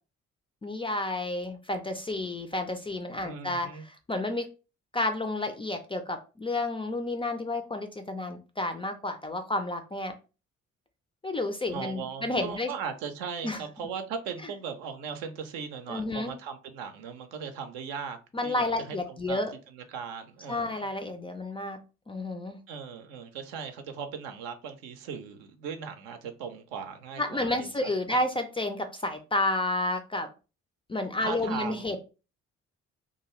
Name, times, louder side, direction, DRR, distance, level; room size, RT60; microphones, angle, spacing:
voice 1, 0.6-4.4 4.9-10.1 11.2-12.7 13.4-13.6 15.9-16.3 18.3-19.5 20.5-21.8 22.1-22.6 27.2-30.3 30.9-32.0, left 2 dB, 15° left, 0.3 m, -31 dB
voice 2, 3.2-3.8 11.7-18.2 18.4-20.9 22.7-27.7 28.1-28.2 31.2-32.0, right 6 dB, 65° right, 0.6 m, -38 dB
2.5 x 2.3 x 3.0 m
figure-of-eight pair, 40°, 39 cm